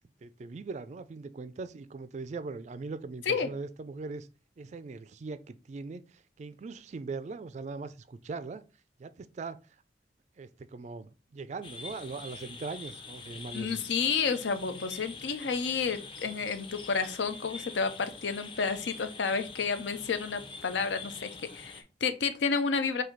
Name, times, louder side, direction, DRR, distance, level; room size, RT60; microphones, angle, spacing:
voice 1, 0.2-4.3 4.6-8.6 9.0-9.6 10.4-13.8, right 4 dB, 40° right, 0.3 m, -40 dB
sound 1, 11.6-21.8, left 4 dB, 30° left, 0.6 m, -45 dB
voice 2, 13.5-23.0, left 5 dB, 85° left, 0.6 m, -30 dB
4.0 x 2.7 x 4.4 m
head